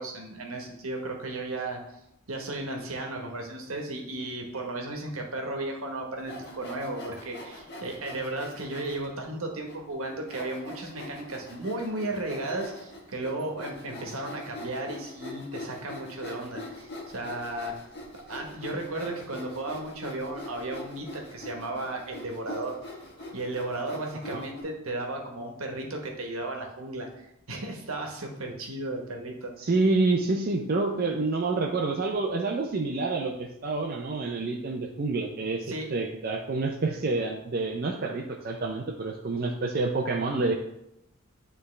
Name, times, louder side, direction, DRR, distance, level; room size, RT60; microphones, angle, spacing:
voice 1, 0.0-1.8 2.3-17.7 18.3-22.8 23.3-29.5 30.6-31.0 35.7-36.0, right 2 dB, 80° right, 2 dB, 1.1 m, -35 dB
Sawing, 6.2-9.1 9.7-9.8 10.3-24.6, left 1 dB, 50° left, 1.5 m, -43 dB
voice 2, 29.6-40.5, right 3 dB, 45° right, 1 dB, 0.5 m, -28 dB
9.4 x 3.4 x 3.2 m, 0.82 s
head